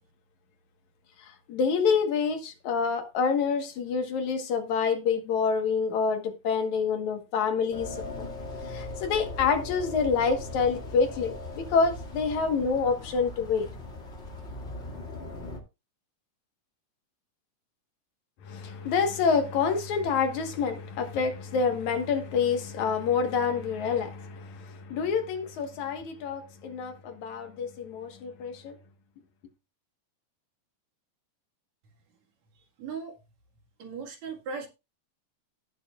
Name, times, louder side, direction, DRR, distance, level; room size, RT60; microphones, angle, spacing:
voice 1, 1.5-7.9 8.2-8.3 8.7-13.7 18.5-28.7, left 5 dB, 70° left, 2.7 m, -27 dB
sound 1, 7.7-15.6, left 2 dB, 25° left, 2.0 m, -39 dB
voice 2, 32.8-33.1 33.8-34.7, right 5 dB, 65° right, 3.1 m, -37 dB
18.0 x 6.6 x 2.4 m
omnidirectional pair, 3.5 m